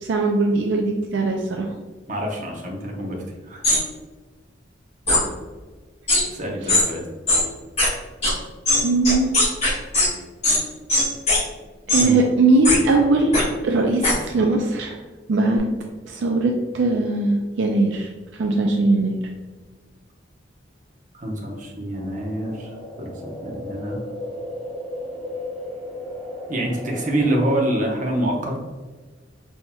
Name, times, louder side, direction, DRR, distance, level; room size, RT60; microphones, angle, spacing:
voice 1, 0.0-1.7 6.6-6.8 8.8-9.3 11.9-15.0 15.3-15.7 16.1-19.2, right 2 dB, 75° right, 2 dB, 0.4 m, -20 dB
voice 2, 2.1-3.7 6.3-7.0 12.0-12.2 21.1-22.7 23.0-24.0 26.5-28.6, right 1 dB, 45° right, 0 dB, 0.8 m, -26 dB
sound 1, 3.6-3.8 5.1-5.2 6.1-6.2 6.7-6.8 7.3-7.4 7.8-7.9 8.2-8.3 8.7-10.1 10.4-10.6 10.9-11.4 11.9-12.1 12.6-12.8 13.3-13.4 14.0-14.1, left 1 dB, 35° left, 1.5 m, -18 dB
sound 2, 21.9-27.6, left 1 dB, ahead, 1.1 m, -35 dB
5.6 x 2.7 x 2.2 m, 1.3 s
head